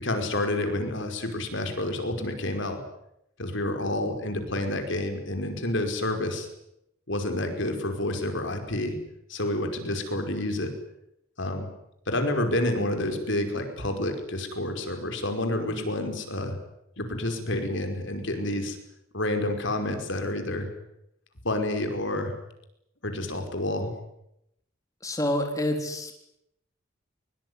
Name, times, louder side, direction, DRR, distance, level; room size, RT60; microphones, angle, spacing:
voice 1, 0.0-2.8 3.4-6.5 7.1-9.0 9.3-10.7 11.4-11.7 12.1-16.6 17.0-18.8 19.1-20.7 21.4-22.3 23.0-23.9, left 1 dB, 60° left, 6 dB, 5.2 m, -29 dB
voice 2, 25.0-26.1, left 1 dB, 15° left, 4 dB, 3.7 m, -27 dB
24.0 x 23.0 x 9.8 m, 0.81 s
head